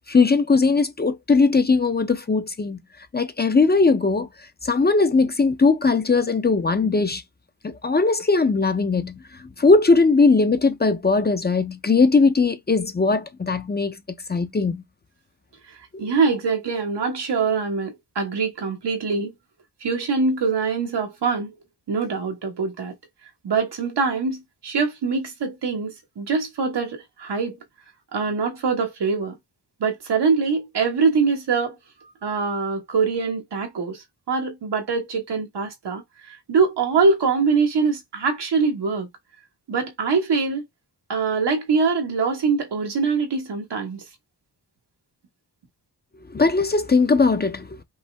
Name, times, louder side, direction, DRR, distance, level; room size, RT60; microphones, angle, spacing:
voice 1, 0.1-2.8 3.1-4.3 4.6-7.2 7.6-9.2 9.6-13.9 14.3-14.8 15.9-16.1 46.3-47.7, left 4 dB, 25° left, 0.5 m, -19 dB
voice 2, 16.0-19.3 19.8-21.6 21.9-22.9 23.4-27.6 28.1-29.4 29.8-31.7 32.2-39.1 39.7-40.6 41.1-44.0, right 4 dB, 85° right, 1.5 m, -23 dB
5.4 x 2.5 x 3.4 m
wide cardioid pair, 120°, 40 cm